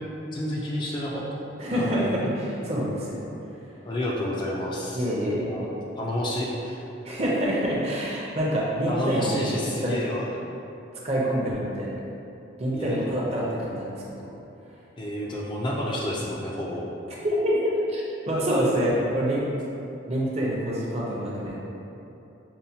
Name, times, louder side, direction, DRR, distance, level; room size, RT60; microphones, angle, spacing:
voice 1, 0.3-2.1 3.9-5.1 5.4-5.7 6.0-6.8 8.9-10.3 12.7-13.0 15.0-16.9, left 1 dB, 25° left, -4 dB, 0.3 m, -30 dB
voice 2, 1.6-3.3 4.9-5.7 7.0-9.6 9.8-9.9 11.0-11.9 12.6-14.3 17.2-19.4 20.1-21.6, equal, 35° right, -5 dB, 0.6 m, -26 dB
5.4 x 2.1 x 2.7 m, 2.9 s
head